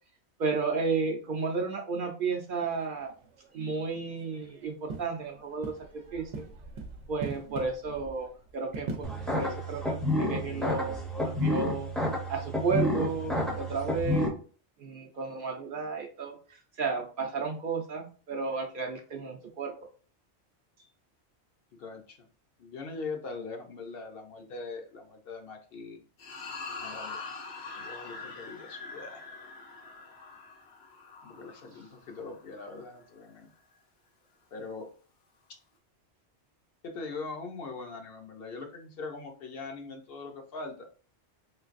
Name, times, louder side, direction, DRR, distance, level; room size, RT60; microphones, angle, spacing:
voice 1, 0.4-3.1 3.5-5.7 6.1-6.5 7.1-11.9 12.3-14.3 14.8-19.7, right 4 dB, 60° right, 2 dB, 0.6 m, -33 dB
sound 1, 2.5-10.3, right 4 dB, 85° right, 0.9 m, -44 dB
sound 2, 9.0-14.3, left 1 dB, ahead, 0.5 m, -30 dB
voice 2, 21.7-22.3 22.6-26.0 26.8-27.2 27.8-29.2 31.2-33.5 34.5-34.9 36.8-40.9, left 4 dB, 60° left, 4 dB, 0.8 m, -41 dB
sound 3, 26.2-32.7, left 4 dB, 85° left, 1.2 m, -43 dB
3.1 x 3.1 x 2.5 m, 0.40 s
omnidirectional pair, 1.2 m